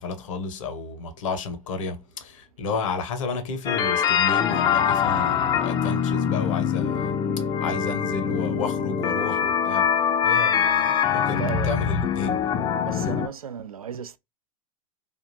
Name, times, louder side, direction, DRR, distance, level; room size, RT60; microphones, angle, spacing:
voice 1, 0.0-7.2 7.6-12.5 12.9-13.2, left 4 dB, 65° left, 0.9 m, -32 dB
sound 1, 3.7-13.3, left 8 dB, 25° left, 0.4 m, -23 dB
voice 2, 11.3-11.7 12.8-14.2, right 7 dB, 85° right, 0.4 m, -34 dB
3.4 x 2.4 x 2.6 m
figure-of-eight pair, 95°, 18 cm